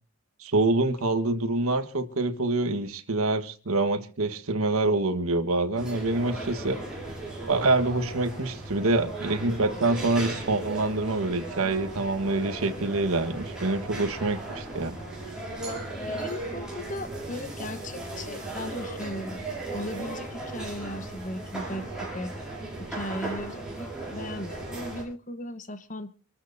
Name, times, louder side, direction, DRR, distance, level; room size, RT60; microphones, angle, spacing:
voice 1, 0.4-6.8 7.5-15.0, right 2 dB, 85° right, 8 dB, 1.4 m, -26 dB
sound 1, 5.7-25.0, right 2 dB, 5° right, 6.1 m, -36 dB
voice 2, 15.6-22.3 22.9-26.1, left 1 dB, 35° left, 12 dB, 1.1 m, -37 dB
27.0 x 13.5 x 2.7 m, 0.35 s
head